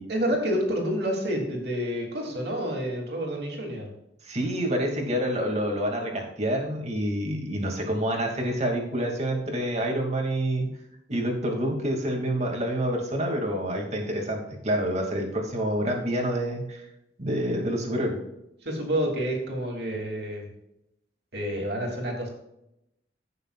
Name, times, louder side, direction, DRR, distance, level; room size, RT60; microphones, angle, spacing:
voice 1, 0.1-3.9 18.6-20.5 21.3-22.3, equal, 65° right, 0 dB, 2.8 m, -29 dB
voice 2, 4.2-10.7 11.1-16.8 17.2-18.2, right 1 dB, 35° right, 1 dB, 2.5 m, -27 dB
16.0 x 6.8 x 2.4 m, 0.84 s
head